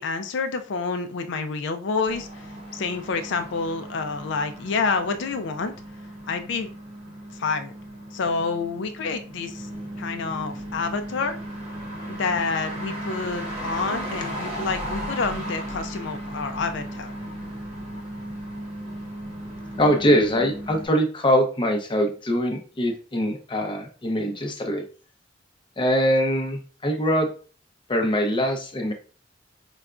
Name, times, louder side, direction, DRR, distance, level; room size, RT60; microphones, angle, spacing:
voice 1, 0.0-2.5 2.7-5.7 6.3-6.7 7.3-7.7 8.1-9.7 10.0-11.4 12.1-17.1, left 4 dB, 65° left, 7 dB, 0.4 m, -28 dB
sound 1, 2.0-20.9, right 1 dB, 35° right, 0.9 m, -36 dB
voice 2, 19.8-24.8 25.8-27.3 27.9-28.9, equal, 25° left, 3 dB, 0.6 m, -23 dB
4.8 x 2.2 x 2.4 m, 0.38 s
head